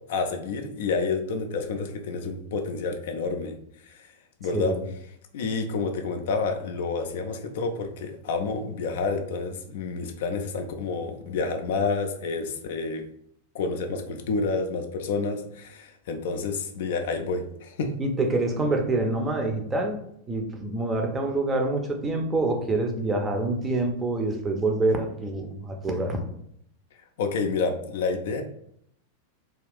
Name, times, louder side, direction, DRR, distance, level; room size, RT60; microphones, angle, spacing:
voice 1, 0.1-3.6 3.8-4.1 4.4-4.7 5.3-13.0 13.5-17.9 27.2-28.4, left 4 dB, 55° left, 5 dB, 0.3 m, -29 dB
voice 2, 4.5-4.9 18.0-20.0 20.3-26.2, right 2 dB, 15° right, 3 dB, 0.5 m, -26 dB
2.4 x 2.3 x 3.4 m, 0.71 s
figure-of-eight pair, 90°, 0 cm